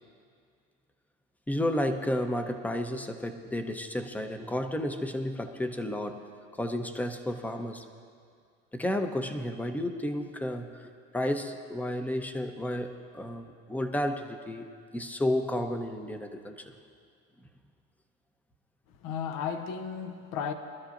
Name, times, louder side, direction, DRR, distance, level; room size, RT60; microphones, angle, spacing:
voice 1, 1.5-6.2 6.6-7.8 8.7-16.5, left 1 dB, 5° left, 6 dB, 0.9 m, -32 dB
voice 2, 18.9-20.5, left 7 dB, 60° left, 7 dB, 1.1 m, -34 dB
23.5 x 12.5 x 2.6 m, 2.2 s
supercardioid pair, 100°, 36 cm